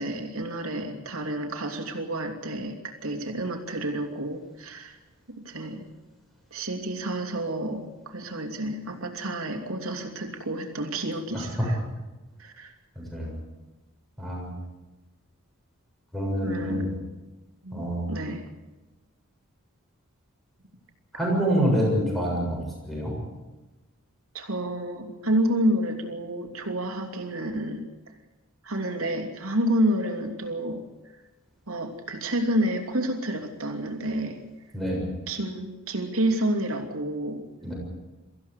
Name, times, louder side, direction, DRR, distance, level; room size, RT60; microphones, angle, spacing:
voice 1, 0.0-5.0 5.3-5.9 6.5-11.8 12.4-12.7 16.4-16.9 17.6-18.4 24.3-27.8 28.6-30.8 31.7-34.4 35.3-37.4, right 1 dB, 70° right, 4 dB, 3.0 m, -29 dB
voice 2, 11.3-11.7 13.0-13.4 14.2-14.5 16.1-16.9 17.7-18.1 21.1-22.6 22.9-23.1 34.7-35.1 37.6-37.7, equal, ahead, -2 dB, 7.3 m, -26 dB
24.5 x 15.0 x 8.3 m, 1.1 s
head